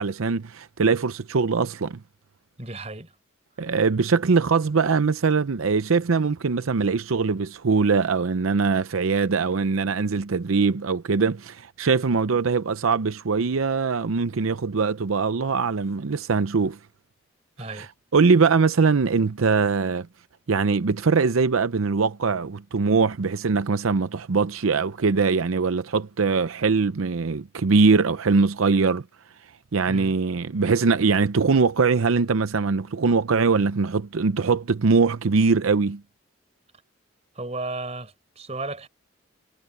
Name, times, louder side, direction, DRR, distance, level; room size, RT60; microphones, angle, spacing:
voice 1, 0.0-2.0 3.6-16.8 17.8-17.9 18.1-20.1 20.5-29.0 29.7-36.0, right 4 dB, 90° right, 0.6 m, -22 dB
voice 2, 2.6-3.1 17.6-17.9 29.9-30.2 37.3-38.9, right 2 dB, 30° right, 4.4 m, -34 dB
head